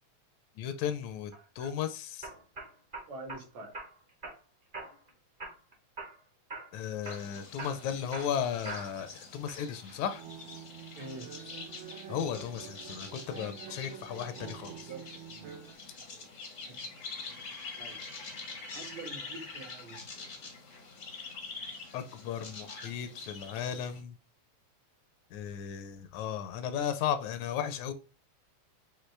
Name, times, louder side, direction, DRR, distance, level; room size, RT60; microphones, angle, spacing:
voice 1, 0.6-2.3 6.7-10.2 12.1-14.9 21.9-24.1 25.3-27.9, left 8 dB, 80° left, 1.9 m, -35 dB
sound 1, 1.3-1.7 2.2-3.4 3.7-4.4 4.7-5.1 5.4-6.2 6.5-6.7 7.0-9.1 9.5-10.0, right 3 dB, 40° right, 0.7 m, -43 dB
voice 2, 3.1-3.7 11.0-11.3 14.7-15.8 16.1-16.3 16.7-16.8 17.8-18.0 18.7-20.0, right 2 dB, 70° right, 2.5 m, -46 dB
sound 2, 7.0-24.0, left 4 dB, 60° left, 0.8 m, -45 dB
sound 3, 10.1-15.8, right 10 dB, 90° right, 2.2 m, -47 dB
5.9 x 2.7 x 3.1 m
omnidirectional pair, 3.3 m